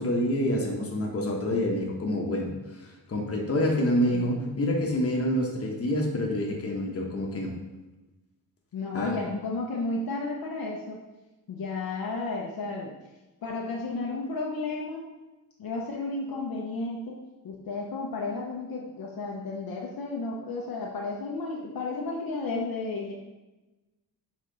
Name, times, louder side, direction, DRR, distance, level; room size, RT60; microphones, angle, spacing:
voice 1, 0.0-2.5 3.1-7.5 8.9-9.1, left 1 dB, 35° left, -1 dB, 1.2 m, -27 dB
voice 2, 4.1-4.7 8.7-11.0 11.5-12.9 13.4-15.0 15.6-17.2 17.4-23.1, left 3 dB, 60° left, -2 dB, 0.9 m, -33 dB
6.6 x 4.2 x 3.9 m, 1.1 s
wide cardioid pair, 125°, 40 cm